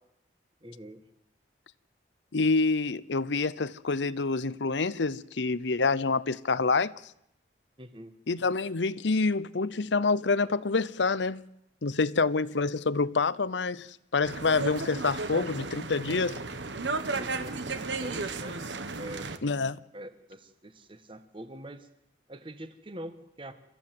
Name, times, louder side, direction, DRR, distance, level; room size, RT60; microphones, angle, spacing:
voice 1, 0.6-1.0 7.8-8.1 17.1-18.6 19.0-19.4 19.9-21.9 22.3-23.5, right 1 dB, 25° right, 1.5 m, -44 dB
voice 2, 2.3-6.9 8.3-11.4 11.8-16.4 19.4-19.8, left 4 dB, 80° left, 0.8 m, -27 dB
sound 1, 14.2-19.4, right 3 dB, 80° right, 1.5 m, -34 dB
29.5 x 14.5 x 7.8 m
head